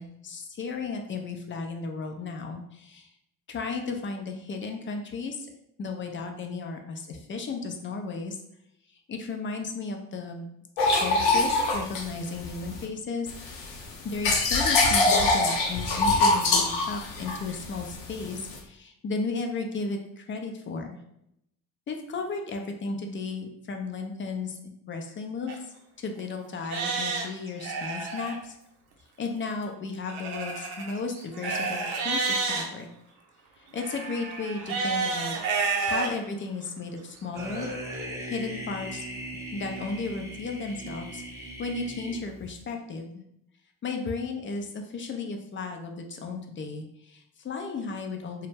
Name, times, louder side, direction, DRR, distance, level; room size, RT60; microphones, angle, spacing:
voice 1, 0.0-3.1 3.5-5.5 5.8-8.4 9.1-10.5 11.0-13.8 14.0-21.0 21.9-28.6 29.2-32.9 33.6-35.4 35.8-37.7 38.2-39.1 39.5-43.2 43.8-48.5, left 4 dB, 25° left, 4 dB, 0.4 m, -34 dB
sound 1, 10.8-12.8 13.3-18.6, left 2 dB, 70° left, 0.7 m, -24 dB
Livestock farm animals working animals, 25.5-25.6 26.2-26.3 26.6-28.4 30.1-32.6 33.8-36.1 36.7-36.8 37.4-37.5, right 4 dB, 75° right, 0.6 m, -30 dB
sound 2, 37.3-42.6, right 1 dB, 5° right, 0.9 m, -38 dB
2.2 x 2.0 x 3.2 m, 0.78 s
hypercardioid pair, 45°, 48 cm